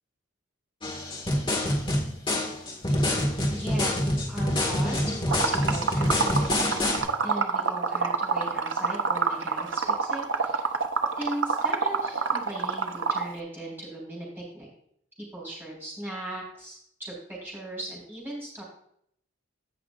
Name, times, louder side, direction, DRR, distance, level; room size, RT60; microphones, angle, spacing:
sound 1, 0.8-7.0, left 1 dB, 25° left, 1.9 m, -26 dB
voice 1, 3.5-6.8 7.2-10.7 11.2-14.7 15.3-18.6, right 1 dB, 10° right, -6 dB, 4.1 m, -38 dB
Liquid, 5.3-13.3, right 5 dB, 70° right, 0.8 m, -26 dB
16.5 x 5.9 x 2.5 m, 0.68 s
head